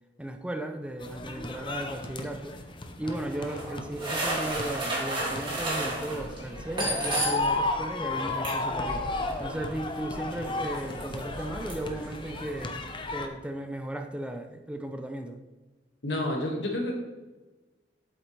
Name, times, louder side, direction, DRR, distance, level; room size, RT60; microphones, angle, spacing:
voice 1, 0.2-2.6 3.0-9.1 9.4-12.8 13.1-15.4, right 1 dB, 5° right, 6 dB, 0.5 m, -36 dB
sound 1, 1.0-13.3, left 2 dB, 30° left, 0.7 m, -34 dB
sound 2, 3.0-7.7 7.9-12.6, right 1 dB, 30° right, 2.4 m, -34 dB
voice 2, 16.0-16.9, left 1 dB, 80° left, 0 dB, 2.0 m, -29 dB
8.2 x 7.6 x 3.3 m, 1.2 s
head